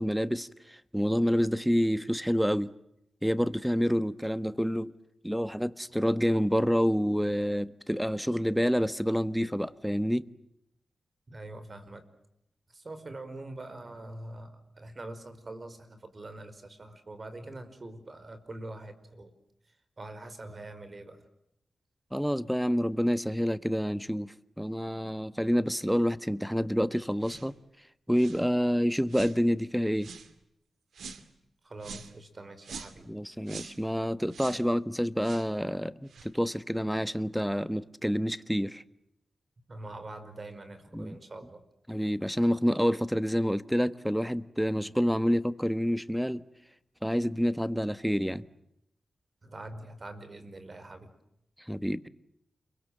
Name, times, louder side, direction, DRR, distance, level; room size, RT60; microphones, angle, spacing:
voice 1, 0.0-2.7 3.2-4.9 5.2-10.3 22.1-27.5 28.1-30.1 33.1-38.8 40.9-41.2 41.9-46.4 47.0-48.4 51.7-52.1, equal, ahead, 1.4 m, -28 dB
voice 2, 11.3-12.0 12.7-19.3 19.7-21.3 31.6-33.1 39.7-41.6 49.4-51.1, right 2 dB, 45° right, 5.1 m, -44 dB
sound 1, 27.2-27.5 28.1-28.4 29.1-29.4 30.0-30.3 30.9-31.3 31.8-32.1 32.6-33.0 33.5-33.8 34.3-34.6 35.2-35.5 36.1-36.3, right 5 dB, 80° right, 2.3 m, -44 dB
29.5 x 23.5 x 7.7 m
cardioid pair, 55°, 0 cm